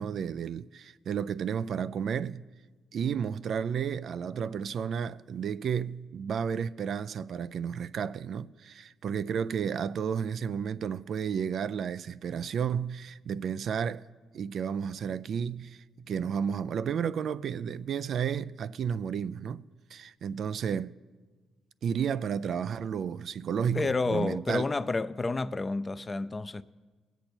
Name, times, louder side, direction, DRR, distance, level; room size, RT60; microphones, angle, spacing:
voice 1, 0.0-2.5 2.9-14.0 14.3-19.6 19.9-21.0 21.8-24.6, right 7 dB, 60° right, 0.3 m, -32 dB
voice 2, 23.7-26.6, left 3 dB, 25° left, 0.4 m, -30 dB
20.0 x 8.1 x 4.3 m
cardioid pair, 90°, 0 cm